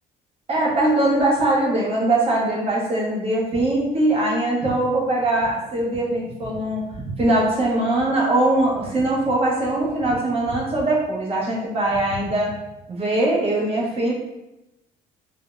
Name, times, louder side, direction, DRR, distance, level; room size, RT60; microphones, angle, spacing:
voice 1, 0.5-6.8 7.2-12.5 12.9-14.1, right 1 dB, 35° right, -4 dB, 0.9 m, -21 dB
3.5 x 2.1 x 2.3 m, 0.95 s
cardioid pair, 110°, 17 cm